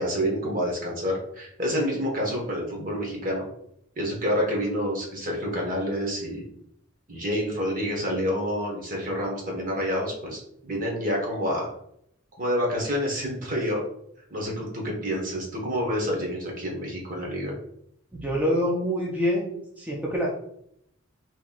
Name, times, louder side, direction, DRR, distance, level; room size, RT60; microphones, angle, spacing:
voice 1, 0.0-3.4 4.0-6.5 7.1-11.7 12.4-13.8 14.3-17.5, equal, 45° right, -1 dB, 1.0 m, -28 dB
voice 2, 18.1-20.3, equal, 10° right, -4 dB, 0.5 m, -26 dB
2.9 x 2.6 x 3.8 m, 0.75 s
head